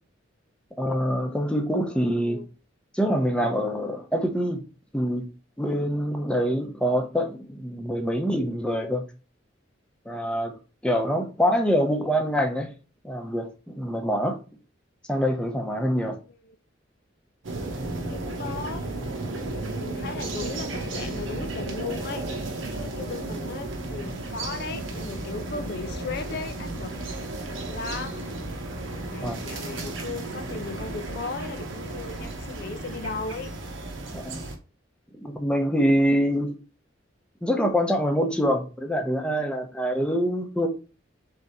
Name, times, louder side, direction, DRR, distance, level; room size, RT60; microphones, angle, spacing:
voice 1, 0.8-2.4 2.9-4.6 4.9-5.2 5.6-9.0 10.1-10.5 10.8-12.7 13.0-14.4 15.1-16.2 29.2-29.4 34.1-34.4 35.1-36.5 37.4-40.7, equal, 5° left, 0.7 m, -25 dB
voice 2, 1.9-2.5 16.4-16.6 18.1-18.8 19.7-22.4 22.7-26.9 27.4-28.4 29.1-33.5, left 4 dB, 55° left, 0.4 m, -37 dB
sound 1, 17.4-34.6, right 2 dB, 75° right, 0.9 m, -34 dB
3.7 x 3.4 x 4.1 m
head